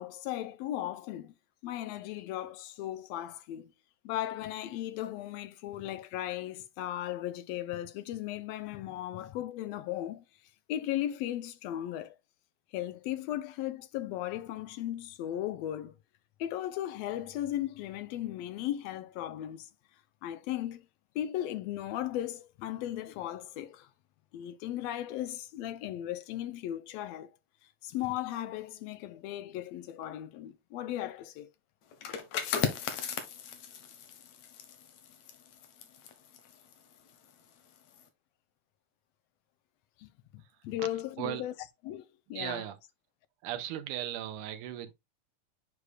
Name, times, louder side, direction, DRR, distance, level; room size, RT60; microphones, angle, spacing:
voice 1, 0.0-1.3 1.6-3.7 4.0-10.2 10.7-12.2 12.7-15.9 16.4-19.7 20.2-20.8 21.1-23.9 24.3-27.3 27.8-31.5 40.0-41.5 41.8-42.6, left 12 dB, 85° left, 1.5 m, -36 dB
sound 1, 31.9-37.4 37.8-38.0, left 7 dB, 70° left, 2.2 m, -37 dB
voice 2, 42.4-42.8 43.4-44.9, right 12 dB, 90° right, 2.2 m, -36 dB
9.5 x 4.8 x 2.2 m
omnidirectional pair, 3.6 m